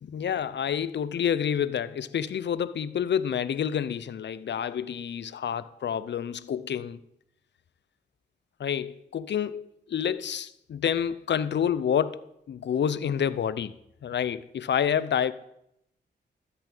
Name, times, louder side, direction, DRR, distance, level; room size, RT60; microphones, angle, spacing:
voice 1, 0.0-7.0 8.6-13.7 14.0-15.3, left 8 dB, 70° left, 0.7 m, -28 dB
13.5 x 7.0 x 8.9 m
cardioid pair, 80°, 19 cm